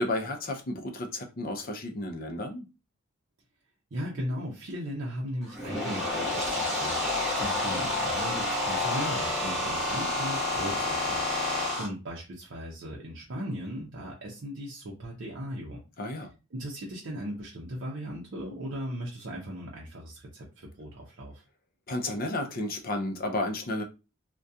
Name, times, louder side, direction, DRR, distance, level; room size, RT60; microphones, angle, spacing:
voice 1, 0.0-2.7 16.0-16.3 21.9-23.8, left 1 dB, 45° left, 0.5 m, -32 dB
voice 2, 3.9-15.8 16.5-21.4, equal, 60° right, 0.6 m, -38 dB
sound 1, 5.4-11.9, left 2 dB, ahead, 0.9 m, -29 dB
2.3 x 2.2 x 2.6 m
head